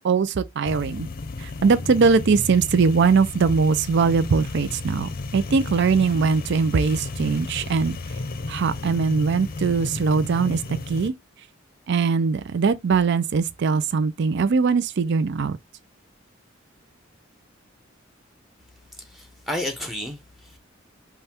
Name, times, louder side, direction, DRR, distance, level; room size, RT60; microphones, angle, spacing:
voice 1, 0.0-1.1 1.4-8.2 8.5-10.6 10.9-11.1 11.9-15.6, right 5 dB, 60° right, 0.4 m, -21 dB
sound 1, 0.7-11.1, left 3 dB, 45° left, 0.6 m, -33 dB
voice 2, 19.0-20.6, left 1 dB, ahead, 0.8 m, -32 dB
5.5 x 2.3 x 4.3 m
head